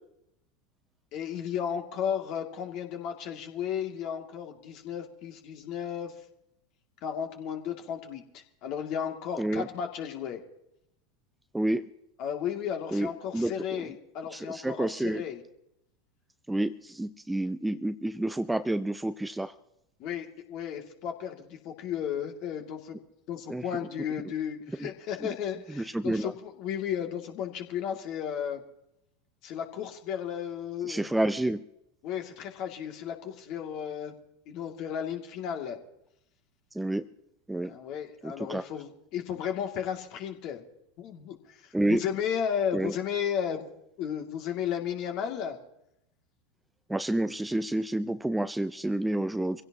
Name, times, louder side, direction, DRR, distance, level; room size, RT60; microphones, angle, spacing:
voice 1, 1.1-6.1 7.0-10.4 12.2-15.4 20.0-23.0 23.3-28.6 29.4-31.1 32.0-34.2 34.5-35.8 37.6-40.6 41.0-43.7 44.0-45.6, left 8 dB, 50° left, 3 dB, 2.5 m, -34 dB
voice 2, 9.4-9.7 11.5-11.9 12.9-13.1 13.3-13.9 14.3-15.2 16.5-19.5 23.5-23.6 24.8-24.9 25.2-25.3 25.7-26.3 30.9-31.6 36.7-37.1 37.5-37.7 38.2-38.7 41.7-42.0 42.7-43.0 46.9-49.6, right 1 dB, 5° right, 13 dB, 0.6 m, -29 dB
25.5 x 16.5 x 3.0 m, 0.81 s
figure-of-eight pair, 80°, 0 cm